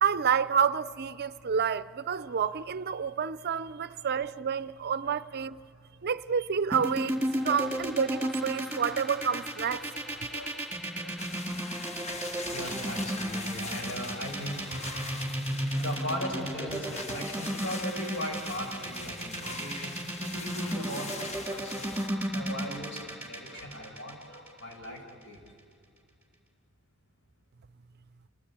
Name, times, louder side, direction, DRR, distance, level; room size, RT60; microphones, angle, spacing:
voice 1, 0.0-5.6 6.0-7.2 7.4-9.8, right 7 dB, 50° right, 0.5 m, -29 dB
sound 1, 6.7-24.8, right 1 dB, 10° right, 4.0 m, -33 dB
voice 2, 9.7-10.6 11.0-11.2 12.1-15.3 15.7-25.4, equal, 60° left, 6.2 m, -39 dB
sound 2, 11.2-22.1, left 3 dB, 35° left, 1.5 m, -42 dB
29.0 x 18.5 x 8.7 m
head